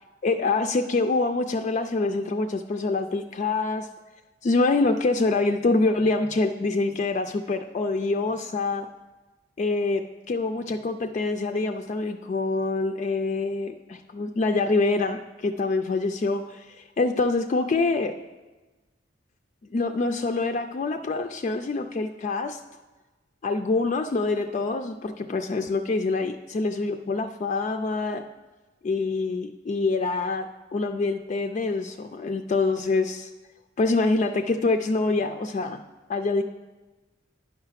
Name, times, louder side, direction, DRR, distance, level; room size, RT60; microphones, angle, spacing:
voice 1, 0.2-3.9 4.4-8.9 9.6-18.1 19.7-22.6 23.4-28.2 28.8-33.3 33.8-35.8 36.1-36.4, left 3 dB, 40° left, 7 dB, 0.3 m, -25 dB
9.5 x 5.7 x 5.7 m, 1.2 s
head